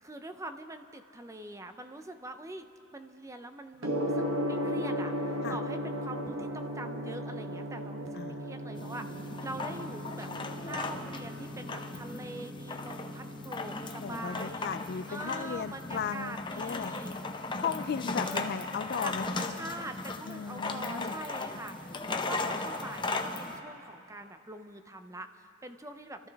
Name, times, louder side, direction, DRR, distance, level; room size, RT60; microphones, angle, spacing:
voice 1, 0.0-2.7 2.9-5.1 5.5-10.3 10.6-14.7 15.1-17.1 18.2-18.4 19.0-26.3, right 2 dB, 15° right, 8 dB, 0.6 m, -44 dB
Gong, 3.8-22.8, equal, 70° right, 1.3 m, -38 dB
voice 2, 8.1-8.8 13.9-16.9 17.6-19.4 20.3-21.1, left 6 dB, 50° left, 13 dB, 0.4 m, -36 dB
sound 1, 8.8-23.6, left 3 dB, 25° left, 0.7 m, -37 dB
29.5 x 13.5 x 3.5 m, 2.8 s
head